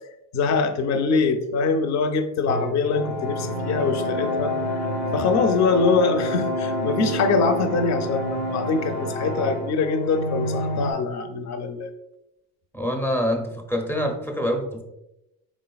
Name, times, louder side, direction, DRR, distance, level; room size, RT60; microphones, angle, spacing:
voice 1, 0.3-4.6 5.1-11.9, left 4 dB, 45° left, 8 dB, 0.5 m, -23 dB
sound 1, 2.5-10.9, left 1 dB, 90° left, 1.0 m, -28 dB
voice 2, 12.7-14.8, equal, 5° left, 3 dB, 0.6 m, -25 dB
4.1 x 3.6 x 2.3 m, 0.88 s
cardioid pair, 105°, 40 cm